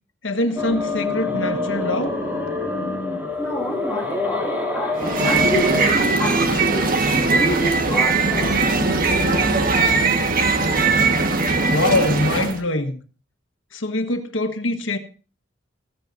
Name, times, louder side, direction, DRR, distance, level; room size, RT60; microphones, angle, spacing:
voice 1, 0.2-2.1 11.7-13.0 13.7-15.0, left 2 dB, 90° left, 1.6 m, -23 dB
sound 1, 0.6-5.9, left 3 dB, 10° right, 3.2 m, -26 dB
voice 2, 3.4-9.6, equal, 15° left, 3.0 m, -29 dB
sound 2, 5.0-12.6, right 3 dB, 50° right, 1.7 m, -19 dB
15.5 x 15.5 x 2.8 m
head